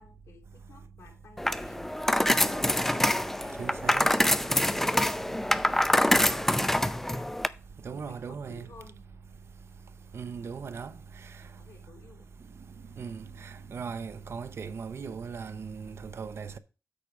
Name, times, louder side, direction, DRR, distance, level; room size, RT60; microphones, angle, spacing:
voice 1, 0.0-1.8 2.4-3.9 4.3-5.1 5.5-7.3 7.9-9.0 11.6-12.3, left 4 dB, 75° left, 2.9 m, -53 dB
sound 1, 1.4-7.5, left 1 dB, 5° left, 0.5 m, -25 dB
voice 2, 3.6-4.1 7.8-8.7 10.1-10.9 13.0-16.6, right 6 dB, 55° right, 0.7 m, -38 dB
8.5 x 5.0 x 6.0 m
cardioid pair, 95°, 5 cm